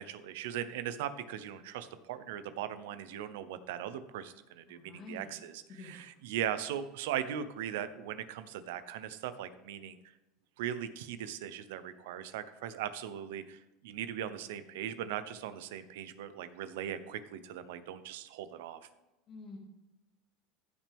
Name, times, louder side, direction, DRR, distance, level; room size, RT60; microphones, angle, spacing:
voice 1, 0.0-10.1 10.6-18.8, right 10 dB, 85° right, 12 dB, 0.8 m, -39 dB
voice 2, 4.7-5.4 5.7-6.1 19.3-19.6, left 3 dB, 45° left, -3 dB, 2.3 m, -48 dB
15.0 x 6.1 x 3.5 m, 1.0 s
supercardioid pair, 120°, 0 cm